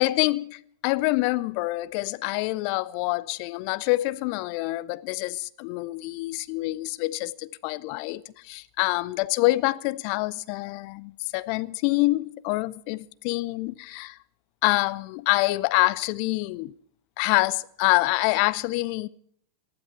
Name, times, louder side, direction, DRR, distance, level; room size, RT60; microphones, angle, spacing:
voice 1, 0.0-14.2 14.6-16.7 17.2-19.1, left 21 dB, 45° left, 0.6 m, -26 dB
19.5 x 12.5 x 4.4 m
figure-of-eight pair, 90°, 0 cm